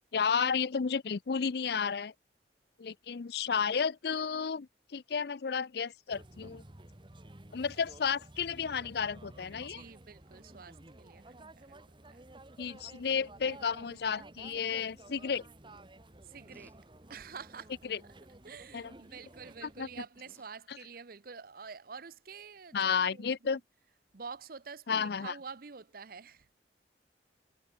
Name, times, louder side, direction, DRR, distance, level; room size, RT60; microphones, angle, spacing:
voice 1, 0.1-2.1 2.8-6.6 7.5-9.8 12.6-15.4 17.8-18.0 18.7-18.9 19.6-19.9 22.7-23.6 24.9-25.3, left 6 dB, 60° left, 0.5 m, -32 dB
sound 1, 6.1-20.1, right 1 dB, 25° right, 1.4 m, -53 dB
voice 2, 9.7-11.8 12.1-12.3 16.2-16.8 17.1-17.9 18.4-23.6 24.1-26.5, right 5 dB, 55° right, 0.8 m, -48 dB
sound 2, 14.7-15.0 16.5-16.8 17.2-17.5 19.0-19.3 19.9-20.6 21.5-21.6, equal, 10° left, 2.8 m, -62 dB
head